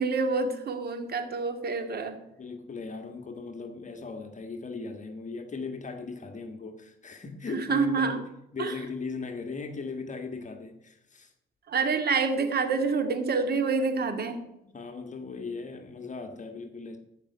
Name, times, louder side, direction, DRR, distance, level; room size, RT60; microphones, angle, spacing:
voice 1, 0.0-2.2 7.5-8.2 8.6-8.7 11.7-14.4, right 4 dB, 50° right, 7 dB, 2.2 m, -27 dB
voice 2, 2.4-11.3 14.6-17.0, left 4 dB, 40° left, 5 dB, 1.7 m, -38 dB
13.5 x 5.5 x 9.5 m, 0.86 s
cardioid pair, 90°, 20 cm